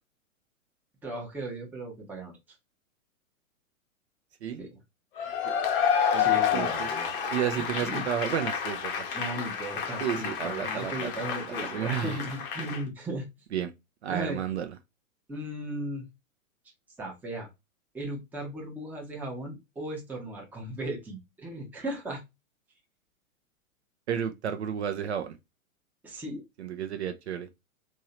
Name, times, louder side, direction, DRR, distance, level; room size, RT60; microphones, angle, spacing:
voice 1, 1.0-2.3 4.6-4.8 6.2-7.1 7.6-8.1 9.1-13.3 14.1-14.4 15.3-16.0 17.0-17.5 17.9-22.2 26.0-26.4, right 1 dB, 5° right, 0.6 m, -36 dB
Cheering / Applause / Crowd, 5.2-12.8, left 7 dB, 40° left, 0.8 m, -29 dB
voice 2, 6.1-6.9 7.3-8.9 10.0-11.1 11.5-12.2 13.5-13.7 14.0-14.7 24.1-25.4 26.6-27.5, right 9 dB, 50° right, 0.6 m, -32 dB
3.1 x 2.7 x 2.8 m
figure-of-eight pair, 115°, 42 cm